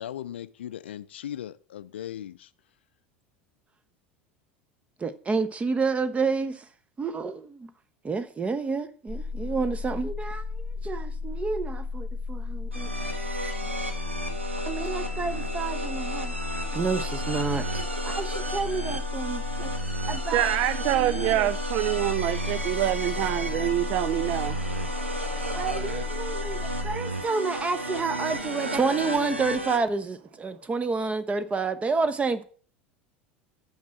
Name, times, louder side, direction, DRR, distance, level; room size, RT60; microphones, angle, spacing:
voice 1, 0.0-2.5, left 11 dB, 70° left, 0.5 m, -38 dB
voice 2, 5.0-6.7 7.0-7.7 8.0-12.9 13.6-13.7 14.6-16.4 16.7-19.7 20.1-20.5 20.9-21.5 25.5-32.4, right 4 dB, 20° right, 1.0 m, -29 dB
sound 1, 9.1-27.0, left 4 dB, ahead, 1.2 m, -34 dB
sound 2, 12.7-29.8, right 1 dB, 90° right, 1.3 m, -33 dB
voice 3, 20.3-24.6, right 14 dB, 50° right, 0.5 m, -26 dB
7.3 x 5.9 x 7.6 m
figure-of-eight pair, 75°, 6 cm